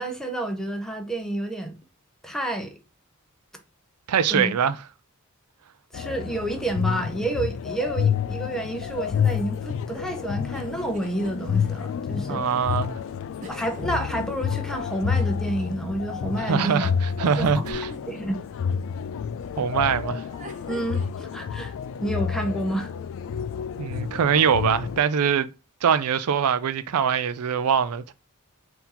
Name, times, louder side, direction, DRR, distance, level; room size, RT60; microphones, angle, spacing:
voice 1, 0.0-1.8 2.2-2.8 4.3-4.5 5.9-12.4 13.5-16.9 17.4-17.6 18.1-18.4 20.7-21.7 22.0-22.9, right 1 dB, ahead, 0.7 m, -29 dB
voice 2, 4.1-4.8 12.3-13.0 16.4-17.9 19.6-20.2 23.8-25.5 25.8-28.1, right 7 dB, 90° right, 0.4 m, -23 dB
sound 1, 5.9-25.0, left 7 dB, 60° left, 0.3 m, -29 dB
sound 2, 10.5-11.3 11.7-11.8 13.4-15.1 17.6-18.2 20.2-21.4, right 2 dB, 35° right, 0.8 m, -43 dB
4.3 x 2.8 x 3.7 m
head